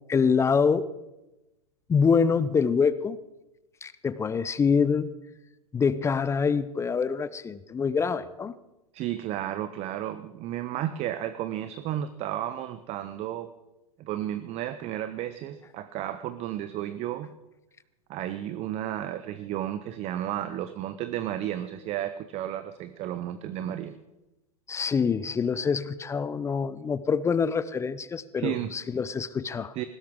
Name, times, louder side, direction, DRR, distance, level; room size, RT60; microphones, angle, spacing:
voice 1, 0.1-0.9 1.9-3.2 3.8-5.1 5.7-8.5 24.7-29.7, left 5 dB, 15° left, 16 dB, 0.5 m, -25 dB
voice 2, 8.9-13.5 14.0-17.3 18.1-24.0 28.4-28.7 29.8-29.9, right 12 dB, 35° right, 13 dB, 0.7 m, -33 dB
18.5 x 16.0 x 3.7 m, 0.98 s
hypercardioid pair, 105°, 19 cm